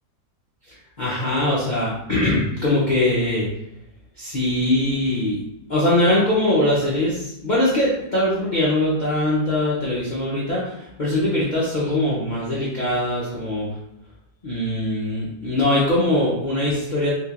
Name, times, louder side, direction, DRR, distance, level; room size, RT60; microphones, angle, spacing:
voice 1, 1.0-3.5 4.2-5.4 5.7-13.6 14.4-17.1, left 1 dB, 55° left, -8 dB, 0.5 m, -21 dB
3.7 x 2.9 x 2.4 m, 0.80 s
omnidirectional pair, 1.9 m